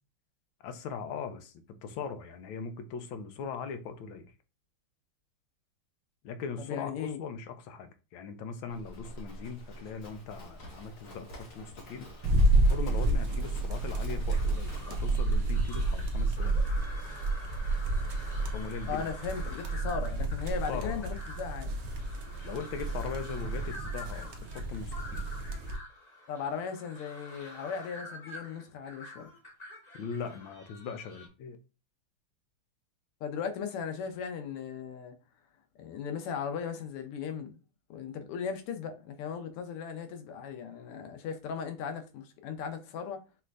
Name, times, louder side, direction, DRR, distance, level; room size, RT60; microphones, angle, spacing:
voice 1, 0.6-1.5 1.8-4.3 6.2-12.1 12.7-16.6 18.4-19.1 20.7-21.1 22.4-25.2 29.9-31.6, left 5 dB, 75° left, 1.3 m, -40 dB
voice 2, 6.6-7.2 18.9-21.7 26.3-29.3 33.2-35.1 35.7-37.5 37.9-43.2, left 6 dB, 90° left, 1.7 m, -37 dB
Livestock farm animals working animals, 8.7-15.2, equal, 50° left, 1.7 m, -46 dB
sound 1, 12.2-25.8, right 2 dB, 70° right, 0.9 m, -30 dB
sound 2, 14.3-31.3, left 2 dB, 25° left, 0.9 m, -48 dB
5.6 x 3.2 x 2.5 m
omnidirectional pair, 2.4 m